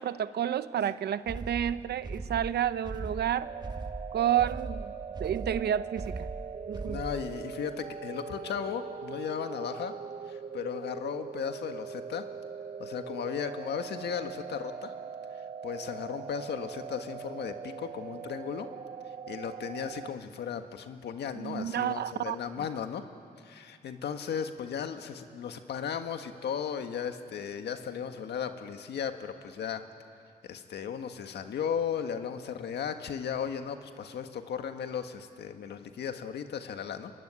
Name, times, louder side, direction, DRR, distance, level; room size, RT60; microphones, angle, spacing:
voice 1, 0.0-3.5 4.1-4.9 5.2-6.1 6.7-7.0 21.4-22.4, right 10 dB, 80° right, 14 dB, 0.8 m, -30 dB
sound 1, 1.3-7.3, right 3 dB, 25° right, 1.5 m, -39 dB
sound 2, 3.4-20.1, right 6 dB, 40° right, 0.8 m, -41 dB
voice 2, 6.9-9.9 10.3-12.3 12.8-14.9 15.3-18.7 19.3-23.0 23.4-29.8 30.4-37.1, left 7 dB, 90° left, 7 dB, 1.7 m, -36 dB
24.5 x 21.5 x 9.7 m, 2.3 s
cardioid pair, 100°, 17 cm